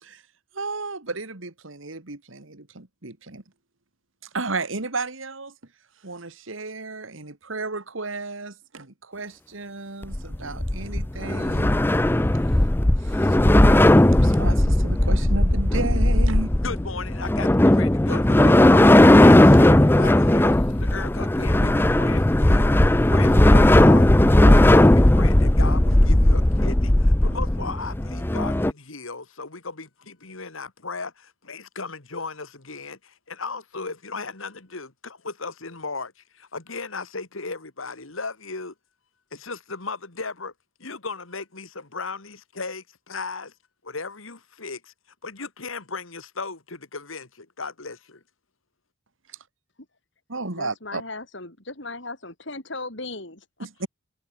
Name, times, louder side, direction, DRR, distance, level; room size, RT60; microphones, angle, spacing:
voice 1, 0.5-3.4 4.3-5.5 6.0-11.7 13.0-13.4 14.0-16.5 50.3-51.0 53.8-53.9, right 3 dB, 75° right, 2.2 m, -33 dB
sound 1, 10.0-28.7, left 1 dB, 10° left, 0.5 m, -17 dB
voice 2, 16.6-22.7 23.1-24.1 24.4-38.7 39.3-40.5 40.8-43.5 43.8-44.9 45.2-48.2, left 4 dB, 85° left, 2.5 m, -36 dB
voice 3, 50.6-53.7, left 2 dB, 60° left, 5.1 m, -37 dB
head